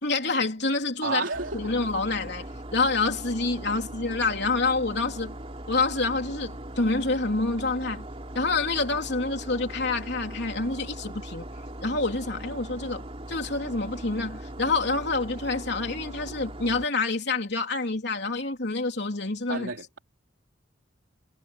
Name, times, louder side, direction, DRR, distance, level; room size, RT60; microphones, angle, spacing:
voice 1, 0.0-1.2 1.5-5.4 5.7-8.1 8.4-11.5 11.8-19.7, left 3 dB, 60° left, 3.5 m, -27 dB
voice 2, 1.0-1.7 3.7-3.8 19.5-20.0, right 4 dB, 85° right, 3.3 m, -31 dB
sound 1, 1.3-16.9, right 1 dB, 30° right, 3.2 m, -40 dB
head